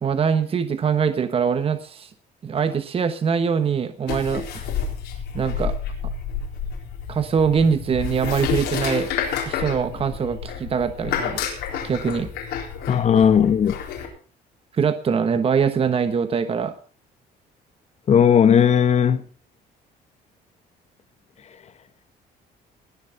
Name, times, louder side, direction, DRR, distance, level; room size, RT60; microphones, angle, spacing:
voice 1, 0.0-2.1 2.4-4.7 5.3-5.7 7.1-9.1 9.5-11.4 11.8-12.3 14.7-16.7, right 6 dB, 35° right, 1.1 m, -23 dB
sound 1, 4.1-14.1, left 7 dB, 90° left, 4.1 m, -29 dB
voice 2, 12.9-13.7 18.1-19.2, left 8 dB, 40° left, 1.2 m, -16 dB
20.0 x 7.5 x 5.6 m
cardioid pair, 110°, 17 cm